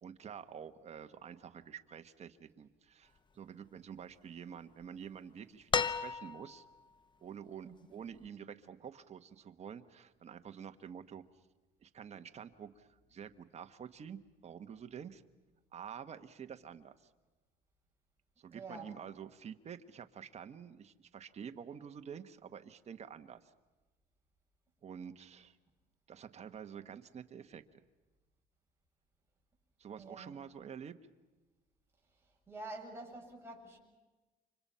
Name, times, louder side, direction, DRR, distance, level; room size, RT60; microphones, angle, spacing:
voice 1, 0.0-6.6 7.2-11.2 11.8-15.2 15.7-17.1 18.4-23.5 24.8-25.6 26.1-27.8 29.8-30.9, right 7 dB, 40° right, 8 dB, 1.4 m, -48 dB
sound 1, 5.7-6.7 8.2-8.3, left 5 dB, 25° left, 0.9 m, -33 dB
voice 2, 7.6-8.0 18.5-18.9 30.0-30.3 32.5-33.8, right 2 dB, 15° right, -2 dB, 7.3 m, -47 dB
29.5 x 25.5 x 5.7 m, 1.2 s
cardioid pair, 110°, 17 cm